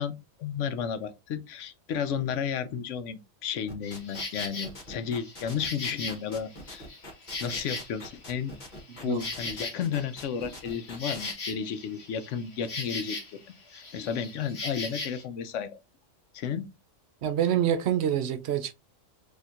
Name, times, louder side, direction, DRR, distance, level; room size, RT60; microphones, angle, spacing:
voice 1, 0.0-6.9 7.4-8.5 9.0-13.2 13.7-15.8 16.3-16.6, left 7 dB, 70° left, 0.9 m, -33 dB
sound 1, 3.7-11.3, left 1 dB, 40° left, 1.2 m, -44 dB
Insect, 3.8-4.7 5.2-8.2 8.6-13.4 13.7-15.2, left 3 dB, 55° left, 1.4 m, -38 dB
voice 2, 17.2-18.7, right 10 dB, 65° right, 0.8 m, -26 dB
4.3 x 2.8 x 2.5 m
omnidirectional pair, 1.4 m